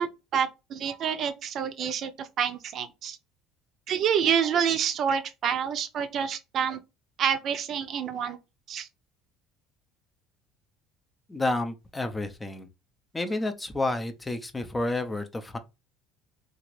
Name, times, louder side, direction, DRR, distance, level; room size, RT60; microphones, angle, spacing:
voice 1, 0.0-3.2 3.9-6.8 7.2-8.4 8.7-8.9, right 8 dB, 50° right, 0.5 m, -28 dB
voice 2, 11.3-12.7 13.1-15.6, left 2 dB, 15° left, 0.5 m, -30 dB
2.8 x 2.5 x 3.1 m
supercardioid pair, 95°, 0 cm